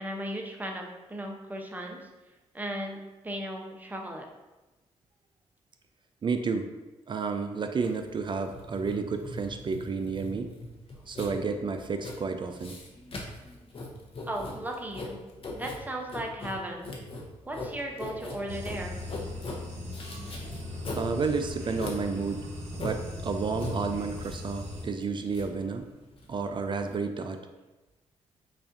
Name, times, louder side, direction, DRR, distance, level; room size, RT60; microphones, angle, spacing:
voice 1, 0.0-2.1 2.5-3.0 3.2-4.3 14.3-15.2 15.5-16.9 17.4-19.0, right 1 dB, 15° right, 1 dB, 0.7 m, -36 dB
voice 2, 6.2-6.7 7.1-10.5 11.1-12.8 20.9-22.5 22.8-25.9 26.3-27.5, right 4 dB, 40° right, 6 dB, 0.4 m, -31 dB
Writing, 7.8-27.0, left 2 dB, 50° left, 0.8 m, -41 dB
sound 1, 18.5-24.8, left 1 dB, 70° right, 1.0 m, -38 dB
5.3 x 2.4 x 2.6 m, 1.1 s
supercardioid pair, 60°, 13 cm